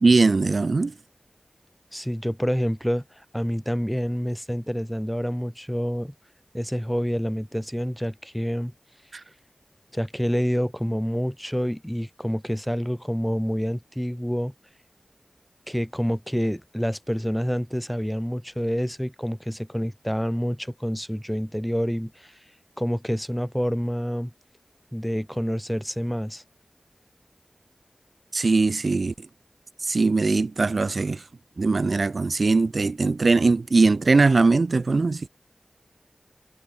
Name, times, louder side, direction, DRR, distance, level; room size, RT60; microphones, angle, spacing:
voice 1, 0.0-0.9 9.1-9.2 28.3-29.1 29.8-31.2 31.6-35.3, right 3 dB, 80° right, 0.5 m, -20 dB
voice 2, 1.9-6.1 6.5-8.7 9.9-14.5 15.7-22.4 22.8-24.3 24.9-26.4, equal, ahead, 1.9 m, -27 dB
wide cardioid pair, 40°, 0 cm